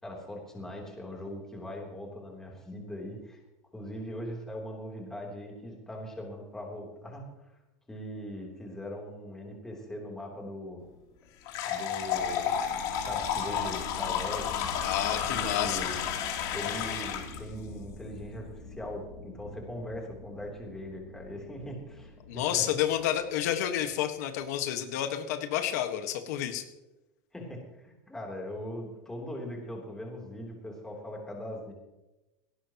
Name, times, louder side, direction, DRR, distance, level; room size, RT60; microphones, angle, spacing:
voice 1, 0.0-3.4 3.7-7.5 7.9-10.8 11.6-12.6 13.0-14.5 15.3-16.0 16.5-22.6 27.3-31.7, equal, 5° left, -1 dB, 3.3 m, -40 dB
sound 1, 11.5-17.4, left 8 dB, 45° left, 3.2 m, -31 dB
sound 2, 12.0-24.2, left 3 dB, 85° left, 5.7 m, -45 dB
voice 2, 14.8-15.9 22.3-26.6, left 11 dB, 65° left, 6 dB, 1.5 m, -30 dB
18.0 x 17.5 x 3.0 m, 1.0 s
supercardioid pair, 175°, 10 cm